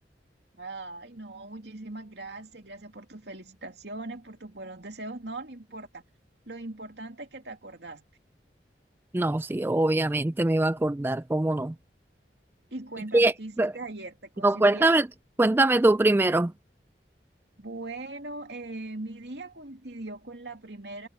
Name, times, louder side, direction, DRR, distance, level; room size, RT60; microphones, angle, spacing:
voice 1, 0.6-6.0 6.5-8.0 12.7-14.9 17.6-21.1, right 2 dB, 75° right, 2.8 m, -40 dB
voice 2, 9.1-11.7 13.1-13.3 13.6-13.7 14.4-15.1 15.4-16.5, right 2 dB, 10° right, 0.3 m, -22 dB
head